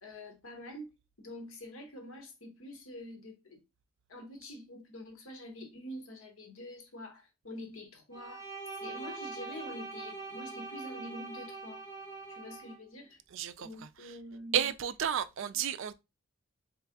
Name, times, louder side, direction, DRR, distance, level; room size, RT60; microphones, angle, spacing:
voice 1, 0.0-3.6 4.1-8.5 8.8-11.8 12.3-13.2 13.6-14.7, left 1 dB, 70° left, 1.0 m, -46 dB
Bowed string instrument, 8.1-12.8, right 3 dB, 15° right, 0.9 m, -43 dB
voice 2, 13.3-13.7 14.5-15.9, right 9 dB, 60° right, 0.3 m, -31 dB
3.6 x 3.2 x 3.5 m
head